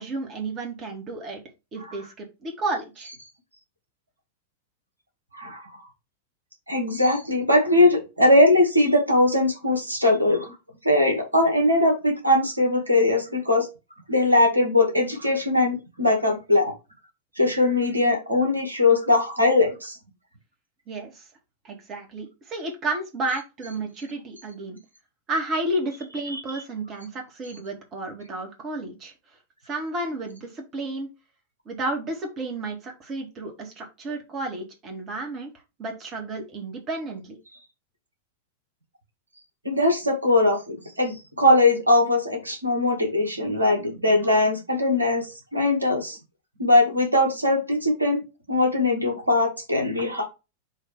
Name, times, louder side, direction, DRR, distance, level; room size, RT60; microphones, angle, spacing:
voice 1, 0.0-1.4 1.7-3.1 20.9-21.3 21.6-24.8 25.3-29.1 29.7-31.1 31.7-35.5 35.8-37.4, right 2 dB, 30° right, 2 dB, 2.1 m, -32 dB
voice 2, 5.3-5.7 6.7-10.5 10.8-13.7 14.1-16.7 17.4-20.0 26.3-26.4 39.7-46.2 46.6-48.2 48.5-50.2, left 2 dB, 85° right, 2 dB, 1.9 m, -21 dB
6.6 x 3.3 x 4.7 m, 0.26 s
figure-of-eight pair, 90°, 0 cm